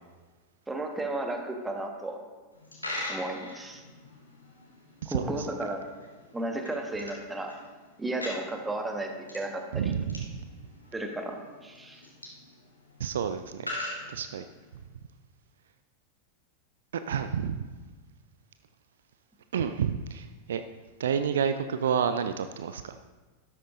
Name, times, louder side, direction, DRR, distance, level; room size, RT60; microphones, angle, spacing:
voice 1, 0.7-2.2 3.1-3.8 5.1-6.0 6.3-7.5 8.0-9.9 10.9-12.0, right 2 dB, 10° right, 4 dB, 1.3 m, -34 dB
Coin (dropping), 2.5-14.8, left 1 dB, 85° left, 2.1 m, -43 dB
voice 2, 5.0-5.5 9.7-10.4 13.0-13.7 14.1-14.4 16.9-17.7 19.5-20.6 21.0-22.9, right 7 dB, 60° right, 10 dB, 0.4 m, -30 dB
12.5 x 12.5 x 2.6 m, 1.3 s
figure-of-eight pair, 90°, 0 cm